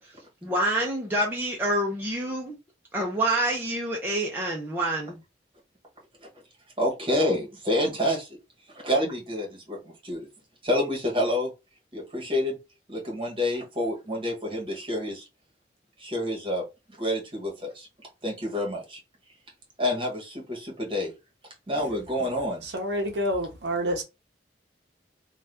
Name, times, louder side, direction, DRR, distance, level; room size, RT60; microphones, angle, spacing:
voice 1, 0.0-2.6 2.9-5.2, right 1 dB, 10° right, 0.5 m, -27 dB
voice 2, 6.8-8.3 8.8-10.3 10.6-11.5 11.9-12.6 12.9-15.2 16.0-16.6 17.0-17.9 18.2-19.0 19.8-21.1 21.7-22.6, left 1 dB, 30° right, 1.1 m, -28 dB
voice 3, 22.6-24.0, equal, 60° right, 0.7 m, -28 dB
2.6 x 2.3 x 3.4 m
head